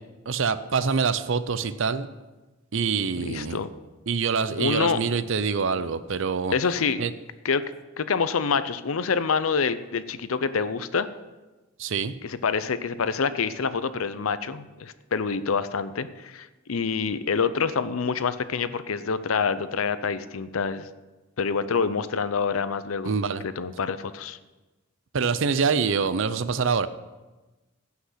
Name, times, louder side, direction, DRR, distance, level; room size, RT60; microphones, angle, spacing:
voice 1, 0.3-2.1 2.7-3.6 4.1-6.5 7.0-7.1 11.8-12.1 23.0-23.4 25.1-26.9, right 5 dB, 65° right, 14 dB, 0.6 m, -25 dB
voice 2, 3.2-3.7 4.6-5.0 6.5-7.0 7.4-7.6 8.0-11.1 12.2-20.9 21.4-23.1 23.4-24.4, left 5 dB, 80° left, 13 dB, 0.6 m, -26 dB
16.0 x 5.8 x 5.8 m, 1.1 s
head